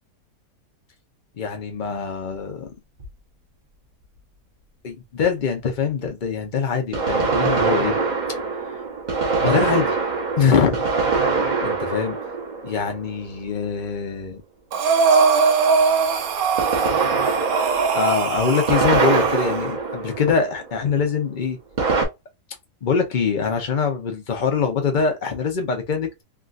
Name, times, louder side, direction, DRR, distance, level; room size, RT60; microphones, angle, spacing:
voice 1, 1.4-2.7 4.8-8.0 9.4-10.0 10.4-10.8 11.6-12.2 12.6-14.4 17.9-21.6 22.8-26.2, left 6 dB, 65° left, 0.4 m, -23 dB
sound 1, 3.0-3.1 6.9-13.4 16.6-20.8 21.8-22.0, right 4 dB, 40° right, 0.7 m, -24 dB
Breathing, 14.7-19.7, right 5 dB, 65° right, 1.0 m, -20 dB
3.5 x 2.4 x 2.5 m
omnidirectional pair, 1.8 m